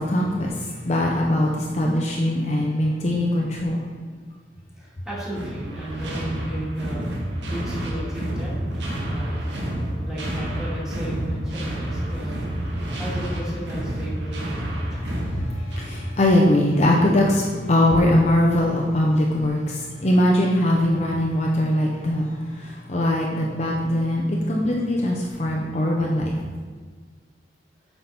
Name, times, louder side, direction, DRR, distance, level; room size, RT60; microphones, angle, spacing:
voice 1, 0.0-3.8 15.0-22.3 22.5-26.4, left 1 dB, 40° left, -2 dB, 0.7 m, -21 dB
voice 2, 4.7-7.1 7.5-9.4 10.0-12.5 13.0-15.0, right 1 dB, 5° right, -8 dB, 2.2 m, -34 dB
sound 1, 5.4-16.1, right 1 dB, 85° right, 1.5 m, -29 dB
7.7 x 5.7 x 4.2 m, 1.5 s
head